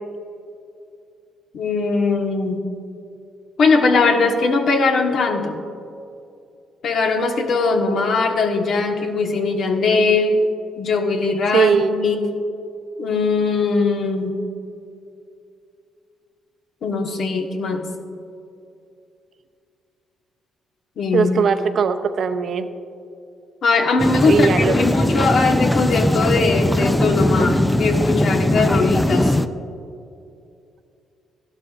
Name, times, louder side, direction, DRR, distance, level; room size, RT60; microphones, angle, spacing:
voice 1, 1.5-2.6 3.6-5.6 6.8-10.4 10.8-12.2 13.0-14.3 16.8-17.9 21.0-21.3 23.6-29.3, left 4 dB, 65° left, 3 dB, 1.3 m, -20 dB
voice 2, 11.5-11.9 21.1-22.7 24.3-24.7, right 6 dB, 55° right, 9 dB, 0.7 m, -19 dB
sound 1, 24.0-29.5, left 1 dB, 10° left, 0.4 m, -19 dB
15.0 x 12.0 x 2.5 m, 2.5 s
cardioid pair, 90°, 0 cm